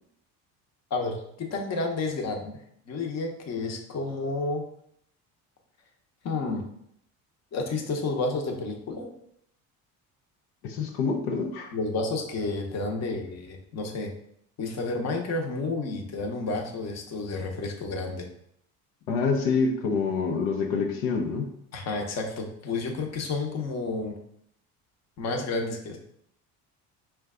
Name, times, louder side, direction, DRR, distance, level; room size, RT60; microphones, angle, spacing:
voice 1, 0.9-2.5 2.9-4.6 6.2-6.6 7.5-9.1 11.7-14.1 14.6-18.2 21.7-24.1 25.2-26.0, left 3 dB, 45° left, 2 dB, 0.9 m, -30 dB
voice 2, 10.6-11.7 19.1-21.6, left 4 dB, 80° left, 1 dB, 0.7 m, -26 dB
4.4 x 2.3 x 3.6 m, 0.72 s
cardioid pair, 100°, 38 cm